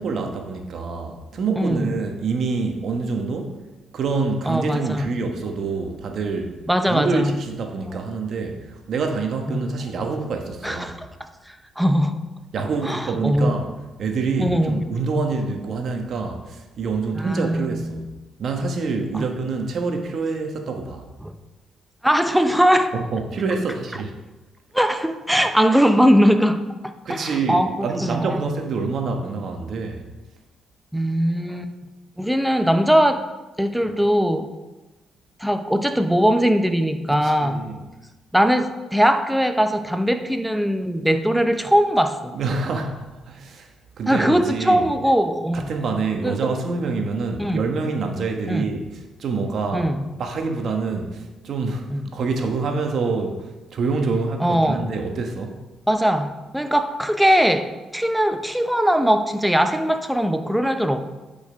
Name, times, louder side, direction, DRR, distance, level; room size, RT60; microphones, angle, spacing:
voice 1, 0.0-3.6 3.9-6.5 6.9-11.0 12.5-13.7 14.0-18.0 18.4-21.1 22.9-24.1 27.0-30.0 37.2-37.8 42.3-43.7 44.0-44.8 45.5-49.9 50.2-55.6, right 4 dB, 60° right, 4 dB, 1.3 m, -26 dB
voice 2, 1.6-2.0 4.5-5.1 6.7-7.4 9.5-9.7 10.6-11.1 11.8-12.2 12.8-13.6 14.4-14.8 17.1-18.0 19.1-19.2 21.2-21.3 22.0-22.9 24.7-28.5 30.9-31.7 32.2-33.2 33.6-34.6 35.4-37.6 38.3-42.3 44.1-46.5 47.4-47.6 48.5-48.7 49.7-50.1 51.9-52.1 54.4-54.8 55.9-61.0, equal, 5° right, 8 dB, 0.7 m, -20 dB
9.0 x 5.3 x 5.1 m, 1.1 s
cardioid pair, 90°, 0 cm